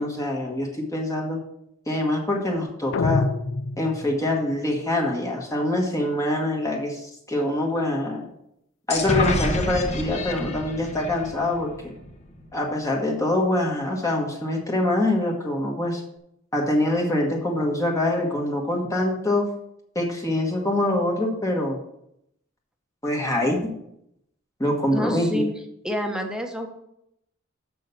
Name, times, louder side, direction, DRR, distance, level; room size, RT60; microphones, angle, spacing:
voice 1, 0.0-1.4 1.9-3.3 3.8-8.3 8.9-11.9 12.5-16.0 16.5-19.4 19.9-21.8 23.0-23.7 24.6-25.5, left 1 dB, 15° left, -1 dB, 1.4 m, -24 dB
sound 1, 2.9-4.4, left 3 dB, 65° left, 0.5 m, -26 dB
sound 2, 8.9-12.6, left 2 dB, 35° left, 1.0 m, -28 dB
voice 2, 24.9-25.5 25.8-26.7, equal, 5° right, 3 dB, 1.1 m, -28 dB
6.6 x 6.4 x 6.8 m, 0.77 s
head